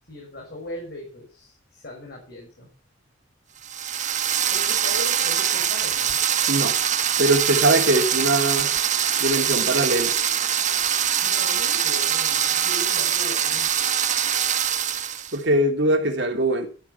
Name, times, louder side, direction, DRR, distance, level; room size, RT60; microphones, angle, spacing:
voice 1, 0.1-2.7 4.5-6.2 11.2-13.7, left 1 dB, 55° left, 6.1 m, -38 dB
sound 1, 3.6-15.4, right 9 dB, 40° right, 1.4 m, -23 dB
voice 2, 7.2-8.7 9.2-10.1 15.3-16.7, right 1 dB, 65° right, 2.9 m, -21 dB
13.0 x 12.5 x 5.9 m
head